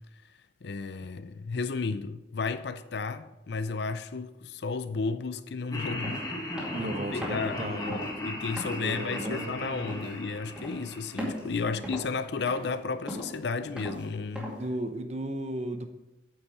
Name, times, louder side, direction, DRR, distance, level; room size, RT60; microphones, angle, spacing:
voice 1, 0.6-6.2 6.8-14.5, left 4 dB, 60° left, 0.5 m, -33 dB
Laughter, 5.7-11.9, left 1 dB, 20° left, 1.5 m, -37 dB
sound 1, 6.0-6.2 6.6-6.9 7.2-7.5 7.9-8.1 8.6-8.8 9.2-9.4 9.9-10.1 10.6-10.8 11.2-11.5 11.8-12.2 12.5-12.7 13.1-13.4 13.8-14.0 14.4-14.6, equal, 5° right, 2.2 m, -37 dB
voice 2, 6.7-8.0 8.8-9.9 11.7-11.9 14.5-15.9, right 1 dB, 35° right, 0.7 m, -35 dB
8.9 x 7.2 x 4.8 m
head